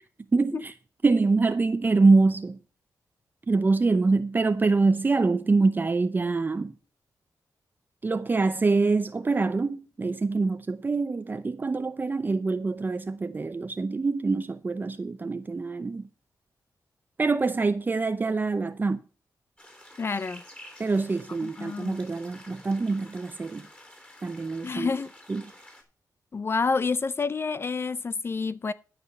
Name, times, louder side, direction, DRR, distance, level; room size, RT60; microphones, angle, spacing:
voice 1, 0.3-0.7 1.0-2.6 3.5-6.7 8.0-16.1 17.2-19.0 20.8-23.7 24.2-24.9 25.3-25.4, right 3 dB, 30° right, 0.6 m, -25 dB
sound 1, 19.6-25.8, left 1 dB, 20° left, 3.5 m, -50 dB
voice 2, 20.0-20.4 21.4-22.0 24.6-25.1 26.3-28.7, left 4 dB, 40° left, 0.5 m, -28 dB
12.5 x 5.0 x 7.0 m
cardioid pair, 100°, 7 cm